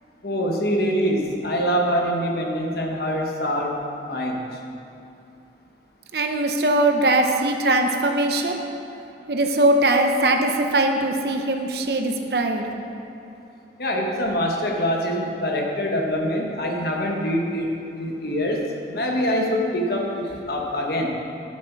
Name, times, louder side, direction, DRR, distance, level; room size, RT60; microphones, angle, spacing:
voice 1, 0.2-3.8 4.0-4.4 13.8-17.7 18.0-21.1, equal, 60° left, 0 dB, 1.3 m, -24 dB
voice 2, 6.1-8.6 9.3-12.7, right 2 dB, 60° right, 4 dB, 0.8 m, -21 dB
11.0 x 7.6 x 4.6 m, 2.8 s
head